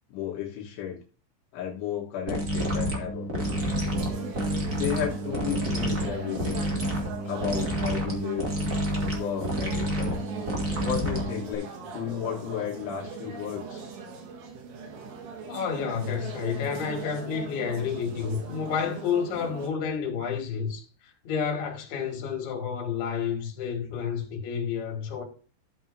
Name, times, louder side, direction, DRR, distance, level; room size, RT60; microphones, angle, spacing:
voice 1, 0.1-1.0 1.5-3.7 4.8-6.7 7.3-8.5 9.1-10.2 10.8-13.8, left 10 dB, 80° left, 3.8 m, -33 dB
sound 1, 2.3-11.5, equal, 30° right, 1.9 m, -29 dB
sound 2, 3.4-19.7, right 5 dB, 70° right, 3.7 m, -40 dB
voice 2, 15.5-20.8 21.2-25.2, left 6 dB, 60° left, 3.9 m, -30 dB
14.5 x 7.6 x 2.7 m
omnidirectional pair, 5.4 m